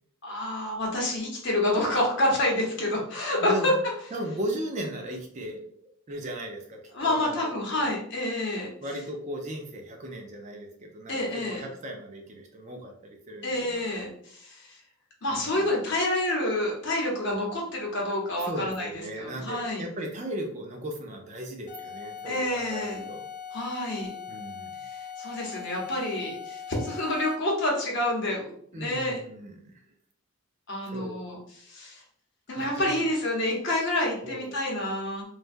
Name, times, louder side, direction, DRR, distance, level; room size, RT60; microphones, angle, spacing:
voice 1, 0.2-3.7 6.9-8.7 11.1-11.6 13.4-14.8 15.2-19.9 22.2-23.0 23.5-24.1 24.8-29.2 30.7-32.0 32.5-35.2, left 1 dB, 55° left, -2 dB, 0.8 m, -28 dB
voice 2, 3.4-3.7 4.1-7.5 8.8-13.9 15.3-15.7 18.4-23.2 24.3-24.7 28.7-29.7 30.9-31.2 32.6-32.9 34.2-34.6, right 1 dB, 35° right, 2 dB, 0.4 m, -37 dB
sound 1, 21.7-27.6, left 7 dB, 35° left, 0.4 m, -40 dB
3.2 x 2.2 x 2.5 m, 0.64 s
head